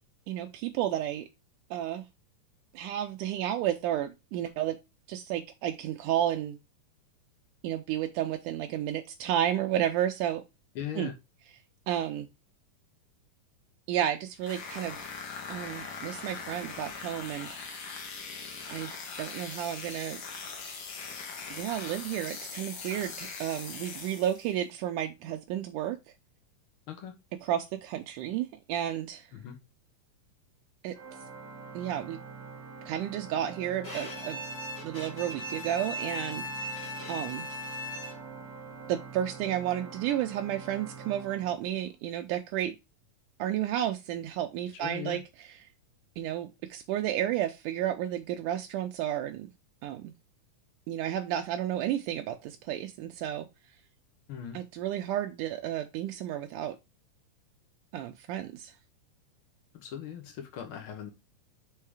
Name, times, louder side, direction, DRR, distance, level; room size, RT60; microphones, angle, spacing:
voice 1, 0.3-1.3 1.7-2.0 2.7-4.8 5.1-6.6 7.6-10.4 11.0-11.1 11.9-12.3 13.9-15.0 15.5-17.5 18.7-18.9 19.2-20.2 21.5-26.0 27.4-29.2 30.8-31.0 31.7-32.2 32.9-34.4 34.8-36.8 37.1-37.5 38.9-42.8 43.4-45.2 46.2-49.5 49.8-50.1 50.9-53.5 54.5-56.8 57.9-58.7, right 11 dB, 80° right, 2.1 m, -32 dB
voice 2, 10.7-11.1 26.9-27.1 29.3-29.6 44.7-45.2 54.3-54.6 59.7-61.1, left 10 dB, 90° left, 1.1 m, -39 dB
sound 1, 14.4-24.6, left 5 dB, 70° left, 1.1 m, -41 dB
Organ, 30.9-42.1, right 5 dB, 60° right, 1.2 m, -45 dB
Bowed string instrument, 33.8-38.4, left 1 dB, 40° left, 0.7 m, -38 dB
5.6 x 3.6 x 4.8 m
omnidirectional pair, 3.8 m